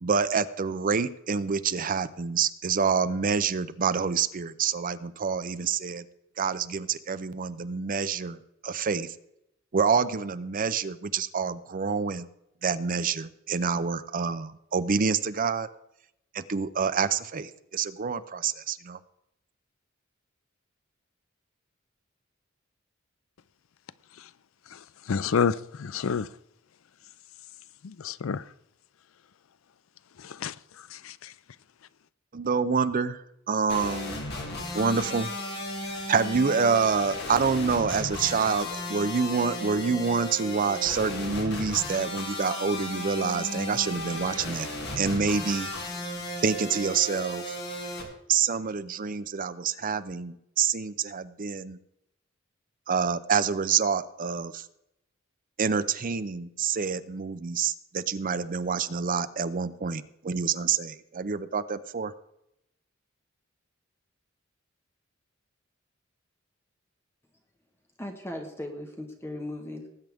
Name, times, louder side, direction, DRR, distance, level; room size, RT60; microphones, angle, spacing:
voice 1, 0.0-6.0 6.4-9.1 9.7-12.3 12.6-15.7 16.3-19.0 32.3-33.2 33.5-34.2 34.7-35.3 36.1-44.7 45.0-45.7 46.4-47.4 48.3-51.8 52.9-54.7 55.6-62.1, right 5 dB, 45° right, 0.6 m, -27 dB
voice 2, 24.7-26.3 27.8-28.4 30.2-31.3, left 6 dB, 75° left, 0.5 m, -30 dB
sound 1, 33.7-48.0, left 1 dB, 55° left, 2.5 m, -35 dB
voice 3, 68.0-69.9, left 1 dB, 10° left, 1.3 m, -37 dB
19.0 x 9.0 x 3.5 m
head